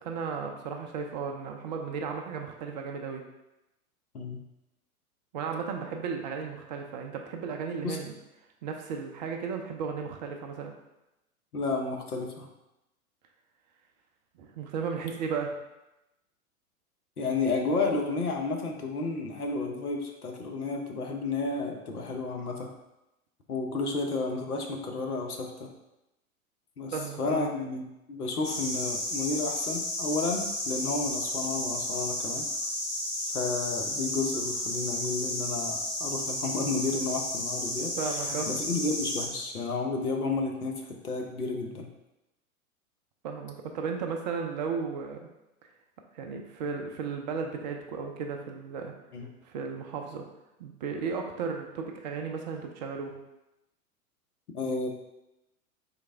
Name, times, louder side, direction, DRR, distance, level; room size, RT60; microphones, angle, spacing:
voice 1, 0.0-3.2 5.3-8.1 8.6-10.7 14.4-15.5 26.9-27.5 38.0-38.5 43.2-45.2 46.1-48.9 49.4-50.2 50.6-53.1, right 5 dB, 35° right, 3 dB, 0.4 m, -34 dB
voice 2, 11.5-12.5 17.2-22.7 23.5-25.7 26.8-27.8 28.1-32.5 33.3-37.9 38.3-41.9 49.1-49.3 54.5-54.9, left 3 dB, 80° left, 3 dB, 0.8 m, -31 dB
sound 1, 28.4-39.3, left 1 dB, 40° left, 1.4 m, -32 dB
4.0 x 3.1 x 3.4 m, 0.93 s
figure-of-eight pair, 100°, 44 cm